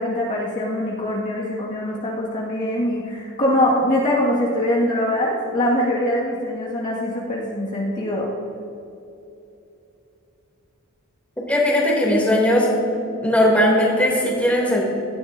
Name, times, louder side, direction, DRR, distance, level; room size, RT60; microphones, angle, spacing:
voice 1, 0.0-8.3, left 1 dB, 35° left, -6 dB, 1.9 m, -23 dB
voice 2, 11.5-12.7 12.9-14.8, left 1 dB, 5° left, -3 dB, 2.8 m, -18 dB
17.5 x 13.0 x 2.7 m, 2.8 s
head